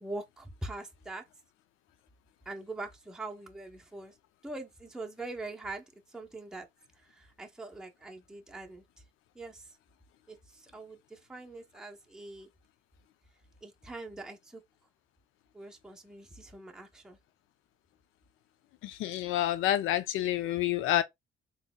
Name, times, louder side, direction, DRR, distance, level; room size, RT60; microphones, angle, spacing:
voice 1, 0.0-1.2 2.5-4.1 4.4-6.7 7.0-8.8 9.3-9.7 10.3-12.5 13.6-14.6 15.5-17.2, right 2 dB, 5° right, 0.7 m, -43 dB
voice 2, 18.8-21.0, left 12 dB, 90° left, 0.5 m, -28 dB
3.8 x 2.9 x 2.2 m
cardioid pair, 90°, 20 cm